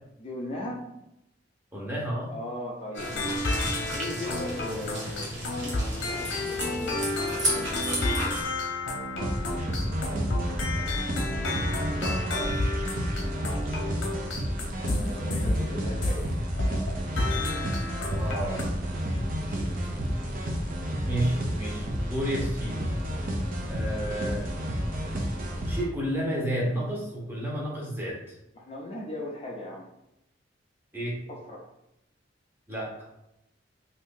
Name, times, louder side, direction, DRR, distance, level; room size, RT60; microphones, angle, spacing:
voice 1, 0.2-0.9 2.3-3.4 3.9-7.9 14.7-16.3 21.0-21.1 21.4-21.5 28.5-29.9 31.3-31.6, left 1 dB, 30° left, -2 dB, 0.5 m, -38 dB
voice 2, 1.7-2.3 11.9-12.8 17.6-17.7 18.1-18.6 19.5-19.7 21.1-22.9 23.7-24.5 25.6-28.4 30.9-31.2 32.7-32.9, equal, 10° right, -5 dB, 0.9 m, -31 dB
sound 1, 2.9-16.2 16.6-16.9 17.2-18.6, left 2 dB, 70° left, 0.8 m, -31 dB
sound 2, 3.0-8.4, right 1 dB, 75° right, 1.1 m, -33 dB
sound 3, 9.2-25.8, equal, 45° right, 0.6 m, -31 dB
2.8 x 2.6 x 3.7 m, 0.86 s
head